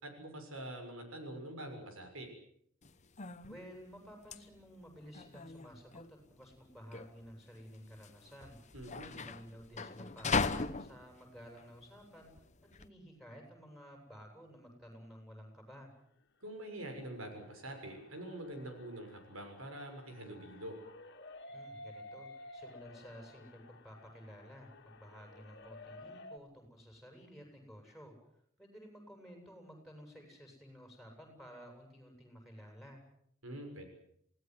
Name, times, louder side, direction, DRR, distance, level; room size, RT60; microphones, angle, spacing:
voice 1, 0.0-2.3 8.7-9.1 16.4-20.8 33.4-33.9, right 1 dB, 80° right, 5 dB, 6.5 m, -45 dB
sound 1, 2.8-12.9, left 4 dB, 35° left, 1.0 m, -39 dB
voice 2, 3.4-8.6 9.0-12.3 12.7-15.9 21.5-28.1 28.6-33.0, equal, ahead, 3 dB, 7.6 m, -53 dB
sound 2, 16.5-26.4, left 2 dB, 55° left, 2.3 m, -54 dB
28.5 x 18.0 x 7.9 m, 0.69 s
head